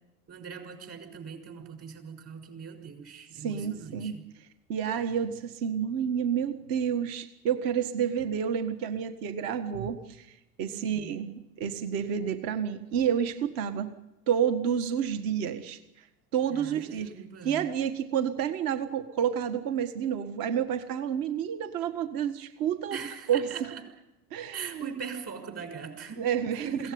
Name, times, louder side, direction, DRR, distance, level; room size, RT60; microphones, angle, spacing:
voice 1, 0.3-4.3 10.7-11.2 16.5-17.7 22.9-23.8 24.5-26.9, right 6 dB, 35° right, 6 dB, 6.3 m, -41 dB
voice 2, 3.4-4.2 4.7-10.3 10.6-13.9 14.3-15.8 16.3-17.1 17.4-23.0 23.3-23.5 24.3-24.9 26.2-26.9, right 8 dB, 55° right, 8 dB, 1.8 m, -29 dB
22.0 x 17.5 x 9.6 m, 0.95 s
hypercardioid pair, 100°, 42 cm